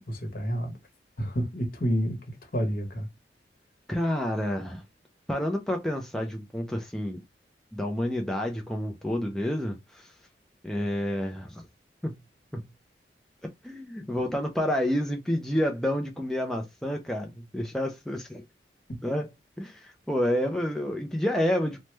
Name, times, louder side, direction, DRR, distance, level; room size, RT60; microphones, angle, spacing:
voice 1, 0.1-0.8 1.2-3.1 18.9-19.0, equal, 55° left, 0.9 m, -29 dB
voice 2, 3.9-4.8 5.3-7.2 7.7-10.1 10.6-11.6 12.0-12.1 12.5-12.6 13.6-18.4 19.0-19.3 19.6-21.8, left 1 dB, 5° left, 0.3 m, -29 dB
3.0 x 2.1 x 3.2 m
head